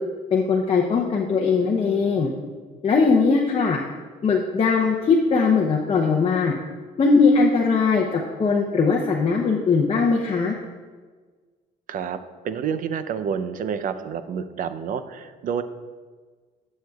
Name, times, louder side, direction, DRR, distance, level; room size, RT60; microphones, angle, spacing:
voice 1, 0.3-2.3 2.8-3.8 4.2-6.5 7.0-10.6, left 4 dB, 35° left, 0 dB, 0.7 m, -20 dB
voice 2, 11.9-12.2 12.4-15.6, right 7 dB, 55° right, 11 dB, 0.6 m, -28 dB
12.0 x 6.5 x 2.4 m, 1.4 s
cardioid pair, 110°, 17 cm